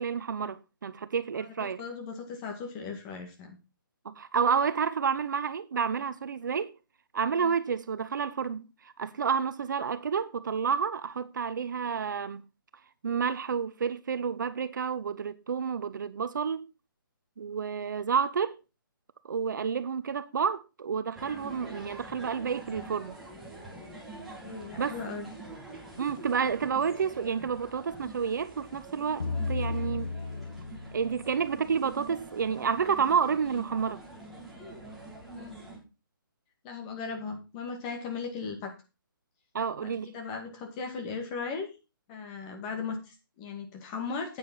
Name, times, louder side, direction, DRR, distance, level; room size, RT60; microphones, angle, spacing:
voice 1, 0.0-1.8 4.0-6.7 7.1-8.6 9.0-12.4 13.0-16.7 17.4-18.6 19.2-23.2 24.8-25.0 26.0-30.1 30.9-34.0 39.5-40.1, right 6 dB, 60° right, 0.8 m, -30 dB
voice 2, 1.4-3.6 7.4-7.5 24.4-25.3 35.3-35.6 36.6-38.7 39.8-41.7 42.1-44.4, left 5 dB, 20° left, 1.9 m, -37 dB
sound 1, 21.1-35.8, right 2 dB, ahead, 2.3 m, -46 dB
sound 2, 29.2-31.6, left 3 dB, 90° left, 1.4 m, -34 dB
9.4 x 8.8 x 4.0 m
hypercardioid pair, 160°, 12 cm